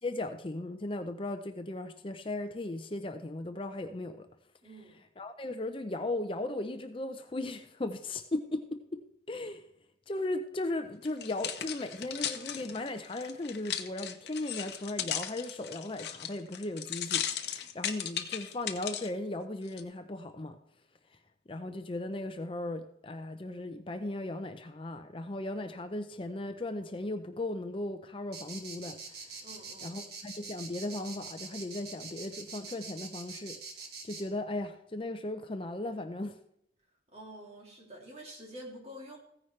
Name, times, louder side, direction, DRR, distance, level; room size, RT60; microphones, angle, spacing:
voice 1, 0.0-4.3 5.2-9.0 9.3-9.6 10.1-20.6 21.5-29.3 29.8-33.6 34.0-36.4, left 2 dB, 30° left, 7 dB, 0.6 m, -37 dB
voice 2, 4.6-5.0 29.4-30.0 37.1-39.2, equal, 35° right, -1 dB, 2.9 m, -47 dB
sound 1, 11.1-19.1 19.7-19.8, left 10 dB, 65° left, 0.9 m, -36 dB
sound 2, 28.3-34.2, right 4 dB, 60° right, 1.8 m, -44 dB
15.0 x 9.8 x 3.2 m, 0.75 s
head